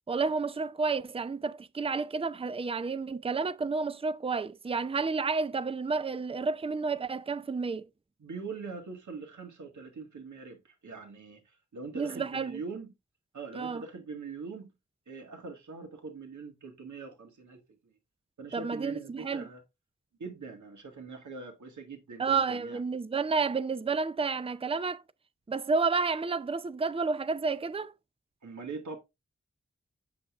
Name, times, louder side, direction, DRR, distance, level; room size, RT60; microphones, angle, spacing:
voice 1, 0.1-7.9 11.9-12.6 13.5-13.8 18.5-19.5 22.2-25.0 25.5-27.9, right 4 dB, 20° right, 0.5 m, -30 dB
voice 2, 8.2-12.9 13.3-14.7 15.1-17.6 18.4-19.6 20.2-22.8 28.4-29.0, right 4 dB, 80° right, 1.7 m, -42 dB
7.5 x 6.3 x 2.4 m
cardioid pair, 45°, 29 cm